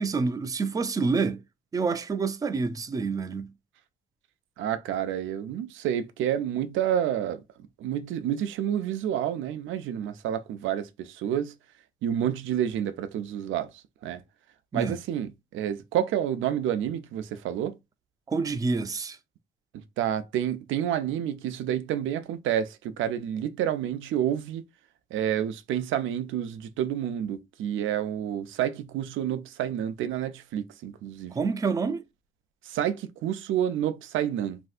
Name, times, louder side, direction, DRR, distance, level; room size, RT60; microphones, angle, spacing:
voice 1, 0.0-1.4 1.7-3.5 14.7-15.0 18.3-19.2 31.3-32.0, right 4 dB, 20° right, 0.3 m, -27 dB
voice 2, 4.6-7.4 7.8-11.5 12.0-14.2 14.7-17.8 20.0-24.6 25.1-31.3 32.6-34.6, right 10 dB, 80° right, 0.4 m, -29 dB
3.2 x 2.6 x 2.3 m
cardioid pair, 90°, 20 cm